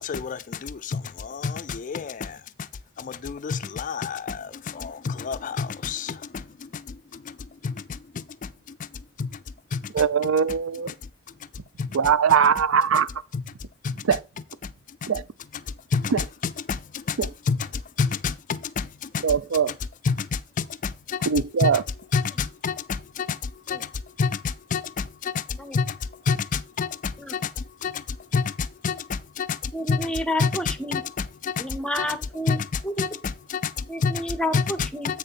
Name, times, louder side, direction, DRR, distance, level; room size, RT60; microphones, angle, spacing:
voice 1, 0.0-2.7 3.0-7.4 7.6-8.9 9.2-9.3 9.7-9.9 11.8-11.9 13.3-13.4 13.8-14.0 14.6-14.7 15.0-15.1 15.9-16.1 16.4-17.2 17.5-19.2 20.0-21.3 21.6-21.7 22.1-23.9 24.2-26.0 26.3-30.1 30.4-30.5 30.9-32.1 32.5-34.2 34.5-34.6 35.0-35.2, left 5 dB, 40° left, 0.4 m, -29 dB
voice 2, 9.9-10.9 11.9-13.1 14.0-14.2 15.1-15.2 16.1-16.2 17.2-17.3 19.2-19.8 21.3-21.8, right 6 dB, 75° right, 0.4 m, -21 dB
voice 3, 29.7-31.0 31.6-32.6 32.8-33.2 33.9-35.1, equal, 5° left, 0.7 m, -30 dB
8.1 x 6.6 x 4.1 m
head